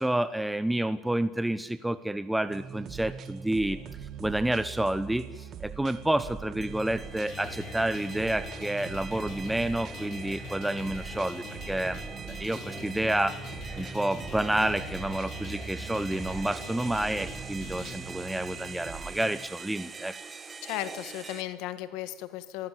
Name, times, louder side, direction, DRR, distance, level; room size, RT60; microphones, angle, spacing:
voice 1, 0.0-3.8 4.2-12.0 12.4-13.4 13.8-20.1, right 1 dB, 5° right, 13 dB, 0.8 m, -29 dB
sound 1, 2.5-19.5, right 7 dB, 45° right, 2.1 m, -43 dB
sound 2, 6.6-21.4, right 5 dB, 25° right, 1.4 m, -43 dB
sound 3, 7.3-17.9, left 6 dB, 55° left, 3.2 m, -44 dB
voice 2, 20.6-22.7, left 14 dB, 75° left, 12 dB, 1.5 m, -35 dB
22.5 x 15.5 x 9.8 m, 0.99 s
cardioid pair, 120°, 0 cm